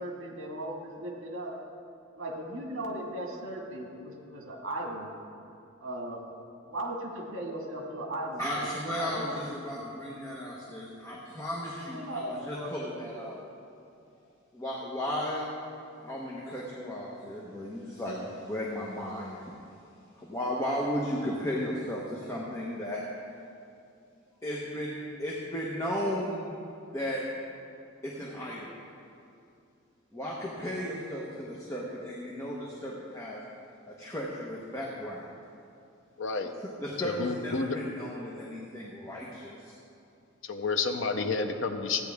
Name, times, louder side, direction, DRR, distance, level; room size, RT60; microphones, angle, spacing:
voice 1, 0.0-1.6 2.2-5.1 5.8-6.2 6.7-8.7 8.9-9.5 11.9-13.4, right 1 dB, 80° right, 0 dB, 1.8 m, -37 dB
voice 2, 8.4-13.4 14.5-15.5 16.0-19.4 20.2-23.0 24.4-26.5 26.9-27.2 28.0-28.7 30.1-33.4 33.9-35.3 36.6-39.7, equal, 15° left, -4 dB, 1.0 m, -35 dB
voice 3, 36.2-36.5 37.0-37.8 40.4-42.0, left 4 dB, 65° left, 6 dB, 0.7 m, -30 dB
15.0 x 9.1 x 3.5 m, 2.5 s
head